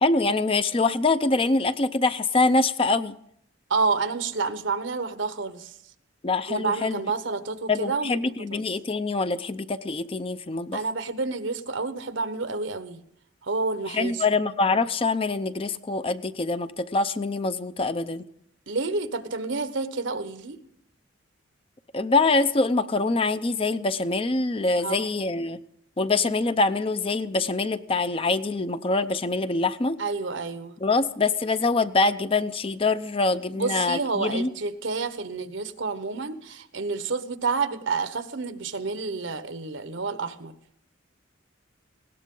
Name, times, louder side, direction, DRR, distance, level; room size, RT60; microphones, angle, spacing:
voice 1, 0.0-3.2 6.2-7.0 7.7-10.8 13.9-18.3 21.9-25.6 26.0-30.0 30.8-34.5, left 3 dB, 30° left, 12 dB, 0.5 m, -24 dB
voice 2, 3.7-5.7 6.5-8.2 8.5-8.6 10.7-13.0 13.4-14.2 18.7-20.6 24.8-25.1 30.0-30.7 33.5-40.5, right 4 dB, 70° right, 11 dB, 1.1 m, -29 dB
19.5 x 17.5 x 3.8 m, 0.71 s
head